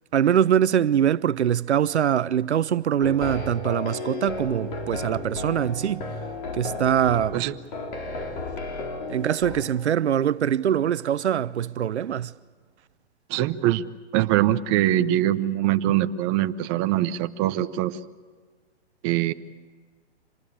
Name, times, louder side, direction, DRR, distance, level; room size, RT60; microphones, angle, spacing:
voice 1, 0.1-6.1 6.5-7.4 9.1-12.3, right 9 dB, 90° right, 0.8 m, -23 dB
sound 1, 3.0-9.6, left 2 dB, 45° left, 4.4 m, -33 dB
voice 2, 13.3-13.9 14.1-18.0 19.0-19.3, right 13 dB, 25° right, 0.7 m, -23 dB
26.5 x 19.5 x 8.8 m
hypercardioid pair, 145°, 33 cm